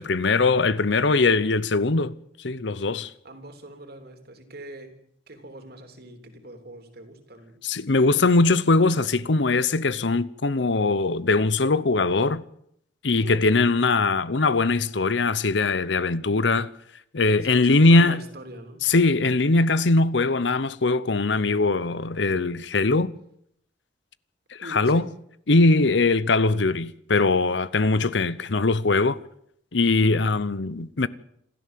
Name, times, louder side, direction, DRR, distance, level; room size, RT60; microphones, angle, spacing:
voice 1, 0.0-2.1 2.4-3.1 7.6-12.4 13.0-16.7 17.1-18.2 18.8-23.1 24.5-25.1 25.5-29.2 29.7-31.1, left 3 dB, 65° left, 0.8 m, -21 dB
voice 2, 3.2-5.0 5.3-7.5 13.2-13.4 17.4-18.8 24.6-25.1, right 1 dB, 55° right, 3.4 m, -42 dB
27.5 x 13.0 x 7.7 m
head